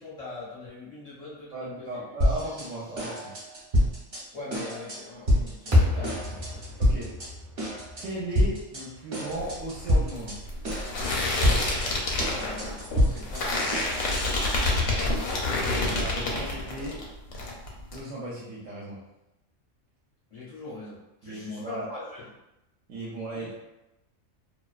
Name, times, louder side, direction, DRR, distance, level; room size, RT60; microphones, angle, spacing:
voice 1, 0.0-2.1 2.6-2.7 4.3-6.6 12.3-13.9 20.3-22.3 23.3-23.5, left 3 dB, 45° left, -8 dB, 0.5 m, -42 dB
voice 2, 1.5-3.3 5.9-6.1 6.8-7.1 8.0-10.4 15.8-17.0 17.9-19.0 21.2-21.9 22.9-23.6, right 1 dB, 75° right, -7 dB, 0.9 m, -36 dB
sound 1, 2.2-2.7 3.0-4.2 4.5-5.0 5.3-5.7 6.0-7.3 7.6-8.0 8.3-8.8 9.1-10.4 10.6-11.1 11.4-14.4, equal, 45° right, 1.0 m, -26 dB
sound 2, 5.7-10.0, left 2 dB, 25° right, 0.5 m, -29 dB
sound 3, 9.3-17.0 17.3-18.0, left 2 dB, 85° left, 1.0 m, -28 dB
2.4 x 2.2 x 2.3 m, 0.94 s
omnidirectional pair, 1.4 m